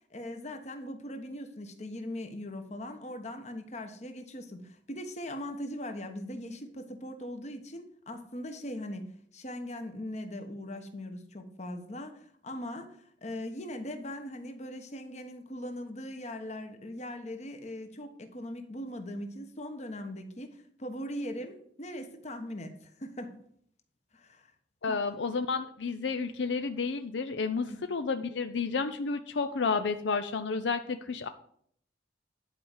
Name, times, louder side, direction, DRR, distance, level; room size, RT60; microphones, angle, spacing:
voice 1, 0.1-23.4 24.1-24.5 24.9-25.0 27.5-27.8, left 1 dB, 40° left, 7 dB, 1.2 m, -40 dB
voice 2, 24.8-31.3, left 4 dB, 75° left, 9 dB, 0.6 m, -31 dB
10.5 x 4.9 x 7.3 m, 0.64 s
head